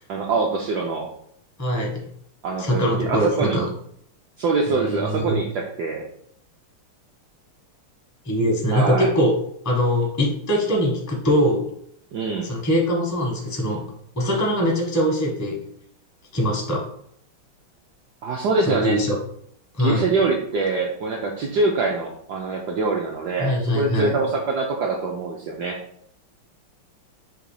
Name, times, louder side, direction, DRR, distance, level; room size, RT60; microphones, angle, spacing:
voice 1, 0.1-1.1 2.4-3.7 4.4-6.0 8.7-9.1 12.1-12.5 18.2-19.0 19.8-25.8, right 3 dB, 75° right, 0 dB, 0.9 m, -24 dB
voice 2, 1.6-2.1 2.6-3.6 4.7-5.4 8.2-9.3 9.6-11.6 12.4-13.8 14.1-15.6 16.3-16.8 18.6-19.2 19.7-20.1 23.4-24.1, equal, 20° left, -2 dB, 0.4 m, -22 dB
3.9 x 2.9 x 4.7 m, 0.68 s
omnidirectional pair, 2.3 m